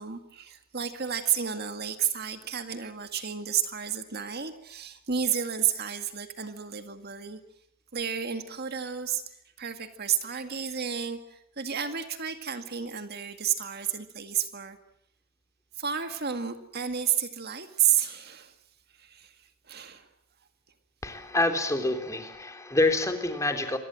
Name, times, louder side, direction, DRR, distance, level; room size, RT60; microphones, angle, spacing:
voice 1, 0.0-7.4 7.9-9.2 9.6-14.8 15.8-18.5 19.0-19.3 19.7-20.1, right 8 dB, 50° right, 8 dB, 2.0 m, -31 dB
voice 2, 21.0-23.8, left 2 dB, 15° left, 6 dB, 3.5 m, -27 dB
28.0 x 24.0 x 7.7 m, 0.71 s
head